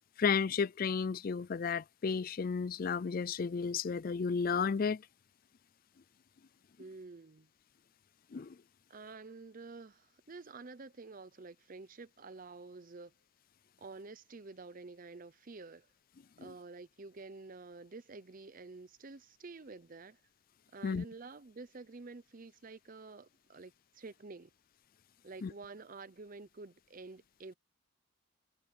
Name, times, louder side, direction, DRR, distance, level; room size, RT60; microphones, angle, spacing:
voice 1, 0.2-5.0 8.3-8.5 16.4-16.5 20.8-21.0 25.4-25.5, left 5 dB, 45° left, 0.4 m, -33 dB
voice 2, 6.8-7.5 8.9-13.1 13.8-15.9 16.4-20.2 20.7-24.5 25.2-27.5, right 3 dB, 40° right, 0.6 m, -49 dB
head